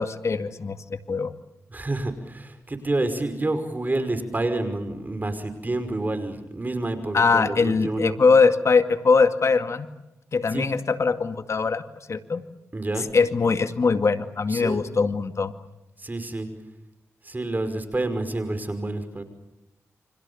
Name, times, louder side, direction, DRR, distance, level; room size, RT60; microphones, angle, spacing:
voice 1, 0.0-1.3 7.1-9.9 10.3-11.8 12.1-12.4 13.1-15.5, left 4 dB, 60° left, 8 dB, 2.2 m, -21 dB
voice 2, 1.7-8.2 10.5-10.7 12.7-13.1 14.5-14.8 16.0-16.5 17.2-19.2, right 2 dB, 30° right, 9 dB, 5.5 m, -28 dB
29.0 x 25.5 x 7.2 m, 0.95 s
cardioid pair, 60°, 6 cm